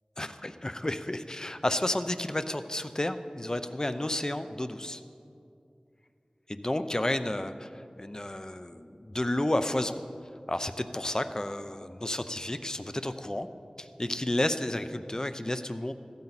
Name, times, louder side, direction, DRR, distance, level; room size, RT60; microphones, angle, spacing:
voice 1, 0.2-5.0 6.5-10.0 10.5-13.5 13.8-15.9, left 1 dB, 30° left, 10 dB, 0.6 m, -31 dB
15.0 x 13.0 x 4.1 m, 2.5 s
wide cardioid pair, 50°, 2 cm